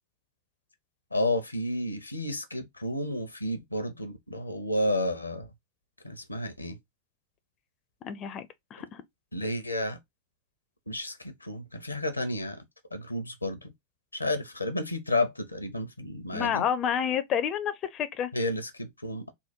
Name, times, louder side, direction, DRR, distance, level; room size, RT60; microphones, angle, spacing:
voice 1, 1.1-5.5 6.0-6.8 9.3-10.0 10.9-12.6 12.9-13.7 14.1-16.6 18.3-19.3, left 1 dB, 85° left, 0.7 m, -31 dB
voice 2, 8.0-8.4 8.7-9.0 16.3-18.3, left 9 dB, 30° left, 0.4 m, -29 dB
3.6 x 2.1 x 4.4 m
figure-of-eight pair, 90°, 0 cm